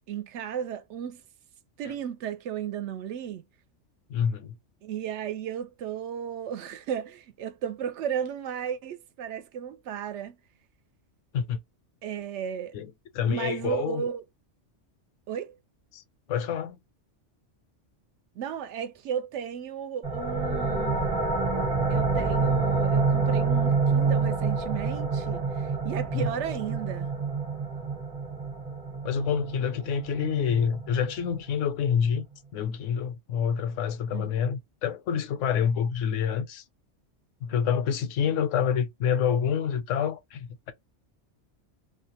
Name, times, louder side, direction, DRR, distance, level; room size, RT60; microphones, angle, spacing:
voice 1, 0.1-1.2 1.8-3.4 4.8-10.4 12.0-12.7 13.2-14.2 15.3-15.5 18.4-21.3 21.9-27.1 34.1-34.3, right 8 dB, 75° right, 0.9 m, -34 dB
voice 2, 4.1-4.5 11.3-11.6 12.7-14.1 15.9-16.0 16.3-16.8 26.1-26.4 29.0-32.3 32.5-36.6 37.4-40.7, left 7 dB, 85° left, 1.0 m, -27 dB
sound 1, 20.0-31.4, right 4 dB, 35° right, 0.9 m, -27 dB
2.4 x 2.1 x 2.7 m
omnidirectional pair, 1.2 m